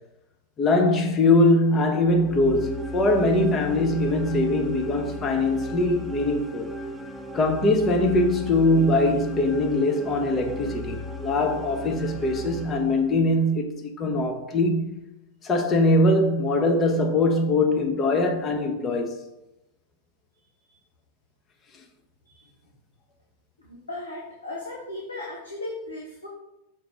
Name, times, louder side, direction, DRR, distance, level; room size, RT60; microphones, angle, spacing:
voice 1, 0.6-6.7 7.3-15.0 15.4-19.2, left 2 dB, 25° left, 1.0 m, -22 dB
sound 1, 2.0-13.4, left 1 dB, 5° right, 0.6 m, -36 dB
voice 2, 23.6-26.3, left 2 dB, 80° left, 1.2 m, -37 dB
6.3 x 4.9 x 3.5 m
figure-of-eight pair, 90°, 0 cm